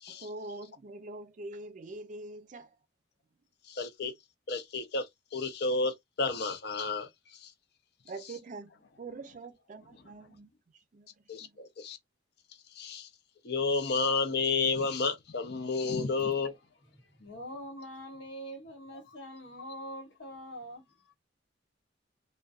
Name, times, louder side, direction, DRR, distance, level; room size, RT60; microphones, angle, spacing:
voice 1, 0.1-2.7 8.1-8.7 9.0-10.5 10.9-11.1 11.4-11.5, right 2 dB, 45° right, 0.4 m, -44 dB
voice 2, 3.7-4.1 4.5-5.1 5.3-7.1 7.4-7.5 11.3-12.0 12.8-13.1 13.4-16.5, left 4 dB, 60° left, 0.6 m, -31 dB
voice 3, 16.9-21.0, equal, 85° left, 1.2 m, -44 dB
2.5 x 2.2 x 2.3 m
head